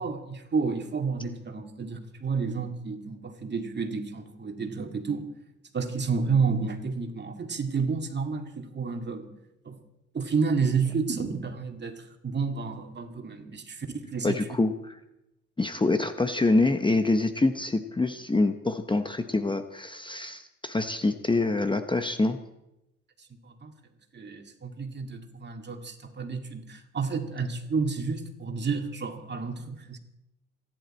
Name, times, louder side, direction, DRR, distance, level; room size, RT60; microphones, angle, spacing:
voice 1, 0.0-5.3 5.7-9.3 9.6-9.8 10.1-14.4 23.4-23.7 24.1-30.0, right 5 dB, 35° right, 5 dB, 2.3 m, -30 dB
voice 2, 14.2-15.0 15.6-22.4, left 2 dB, 15° left, 8 dB, 0.9 m, -26 dB
27.0 x 11.0 x 4.4 m, 0.91 s
cardioid pair, 90°, 30 cm